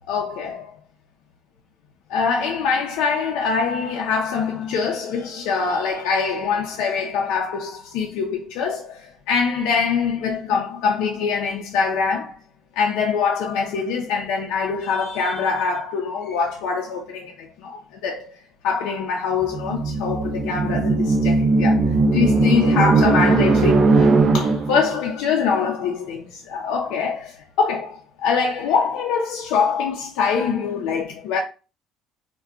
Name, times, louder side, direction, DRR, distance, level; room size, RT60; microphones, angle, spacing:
voice 1, 0.1-0.7 2.1-12.4 12.8-31.4, left 5 dB, 80° left, 0.5 m, -24 dB
sound 1, 19.4-24.9, right 3 dB, 30° right, 0.4 m, -18 dB
2.3 x 2.1 x 3.7 m
cardioid pair, 170°, 0 cm